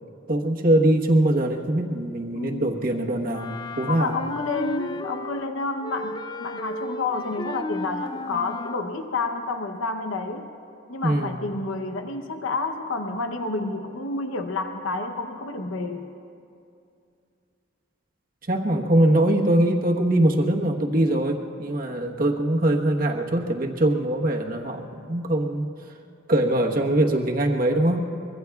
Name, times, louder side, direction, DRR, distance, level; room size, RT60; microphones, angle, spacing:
voice 1, 0.3-4.2 11.0-11.4 18.5-25.7 26.3-28.0, right 1 dB, 45° right, 1 dB, 1.2 m, -22 dB
voice 2, 2.3-2.8 3.9-10.5 10.9-16.1, left 3 dB, 85° left, 6 dB, 0.8 m, -29 dB
Wind instrument woodwind instrument, 3.3-5.5 5.8-8.9, left 2 dB, 20° left, 0.3 m, -34 dB
24.0 x 22.5 x 2.3 m, 2.5 s
head